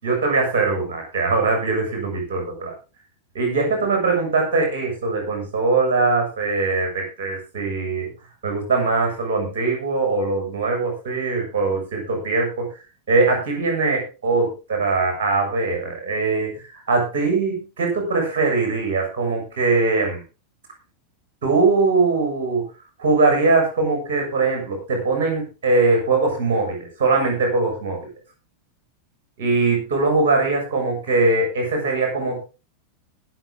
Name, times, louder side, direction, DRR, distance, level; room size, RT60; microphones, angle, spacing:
voice 1, 0.0-2.7 3.3-8.1 8.4-12.7 13.1-20.2 21.4-22.6 23.0-28.0 29.4-32.4, right 3 dB, 55° right, 3 dB, 6.9 m, -21 dB
21.0 x 7.5 x 3.9 m, 0.31 s
figure-of-eight pair, 90°, 0 cm